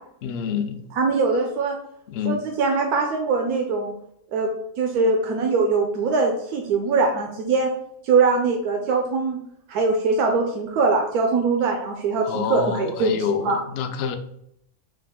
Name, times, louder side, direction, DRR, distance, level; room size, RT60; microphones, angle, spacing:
voice 1, 0.2-0.8 2.1-2.4 12.3-14.2, left 7 dB, 70° left, 7 dB, 0.5 m, -27 dB
voice 2, 0.9-1.8 2.2-3.9 4.3-4.5 4.8-7.7 8.0-9.4 9.7-13.6, right 4 dB, 85° right, 2 dB, 1.1 m, -22 dB
4.9 x 2.3 x 3.5 m, 0.74 s
omnidirectional pair, 1.6 m